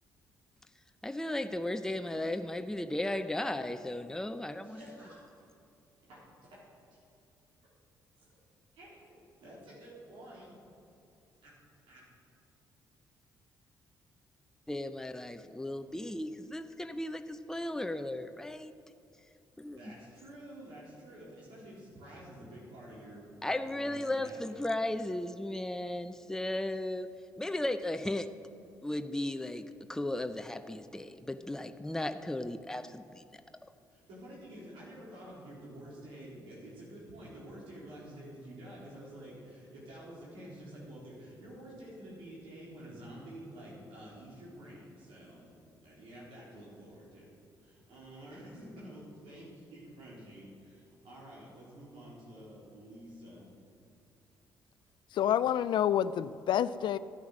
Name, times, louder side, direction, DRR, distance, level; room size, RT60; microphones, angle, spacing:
voice 1, 1.0-5.0 14.7-18.8 19.6-19.9 23.4-27.1 27.4-28.3 28.8-33.4, left 1 dB, 5° left, 8 dB, 0.7 m, -35 dB
voice 2, 4.6-5.3 6.0-6.2 6.5-6.6 6.9-7.0 8.2-8.3 8.7-10.5 11.4-11.5 11.9-12.0 19.7-24.5 33.9-45.5 45.8-47.3 47.6-53.5, right 1 dB, 75° right, -7 dB, 3.8 m, -49 dB
voice 3, 55.1-57.0, left 10 dB, 65° left, 15 dB, 0.4 m, -28 dB
13.0 x 9.4 x 6.3 m, 2.7 s
supercardioid pair, 55°, 9 cm